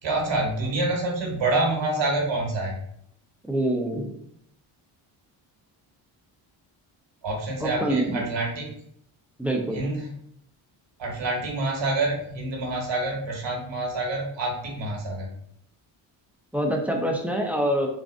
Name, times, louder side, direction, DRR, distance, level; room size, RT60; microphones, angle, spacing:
voice 1, 0.0-2.8 7.2-8.7 9.7-10.1 11.0-15.3, right 2 dB, 60° right, -1 dB, 1.3 m, -27 dB
voice 2, 3.4-4.2 7.6-8.2 9.4-9.8 16.5-17.9, right 1 dB, 5° right, 1 dB, 0.6 m, -25 dB
3.6 x 2.4 x 2.5 m, 0.70 s
supercardioid pair, 65°, 50 cm